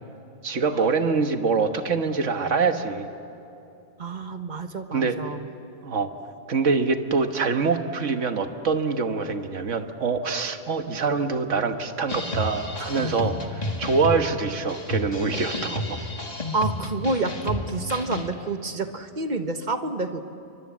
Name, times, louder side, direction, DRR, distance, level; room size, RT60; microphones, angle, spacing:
voice 1, 0.4-3.1 4.9-5.2 5.8-6.1 6.5-16.0, right 4 dB, 90° right, 7 dB, 1.7 m, -25 dB
voice 2, 4.0-5.5 12.8-13.0 16.5-20.2, right 3 dB, 40° right, 8 dB, 1.3 m, -29 dB
sound 1, 12.1-18.3, left 2 dB, 35° left, 1.8 m, -31 dB
29.0 x 24.5 x 7.3 m, 2.7 s
omnidirectional pair, 1.2 m